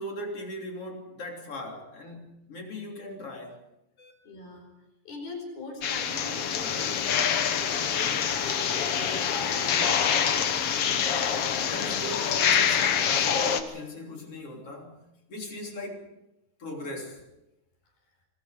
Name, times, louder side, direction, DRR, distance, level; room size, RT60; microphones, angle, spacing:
voice 1, 0.0-3.6 4.0-4.1 11.7-16.1 16.6-17.2, left 1 dB, 35° left, 3.9 m, -39 dB
voice 2, 4.2-4.7 5.0-10.0, left 3 dB, 65° left, 6.8 m, -41 dB
sound 1, 5.8-13.6, left 8 dB, 85° left, 1.3 m, -26 dB
26.5 x 21.5 x 5.1 m
omnidirectional pair, 4.8 m